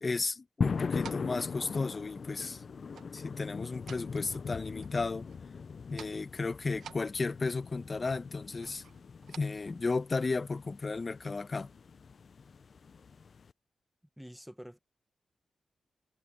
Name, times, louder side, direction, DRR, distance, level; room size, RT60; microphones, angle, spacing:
voice 1, 0.0-2.6 3.1-5.3 5.9-8.8 9.3-11.7, left 3 dB, 40° left, 1.0 m, -34 dB
sound 1, 0.6-13.5, left 5 dB, 60° left, 0.4 m, -40 dB
sound 2, 1.0-1.5 2.9-3.2 3.6-4.5 4.8-5.5 5.8-6.3 6.8-7.6 8.6-9.4, right 8 dB, 90° right, 0.8 m, -51 dB
voice 2, 14.2-14.8, equal, 5° right, 1.1 m, -47 dB
cardioid pair, 70°, 0 cm